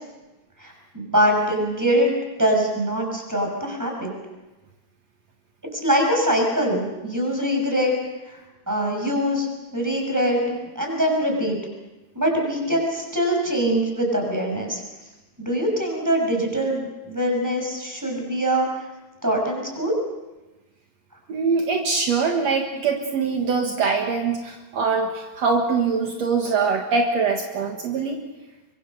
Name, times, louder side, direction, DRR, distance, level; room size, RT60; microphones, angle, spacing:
voice 1, 0.6-2.1 2.4-4.1 5.7-7.9 8.3-8.4 8.7-9.5 9.7-11.6 12.1-14.8 15.4-18.7 19.2-19.9, equal, 5° right, 1 dB, 6.2 m, -23 dB
voice 2, 21.3-28.2, right 4 dB, 65° right, 2 dB, 2.7 m, -23 dB
25.0 x 24.0 x 6.6 m, 1.1 s
omnidirectional pair, 3.4 m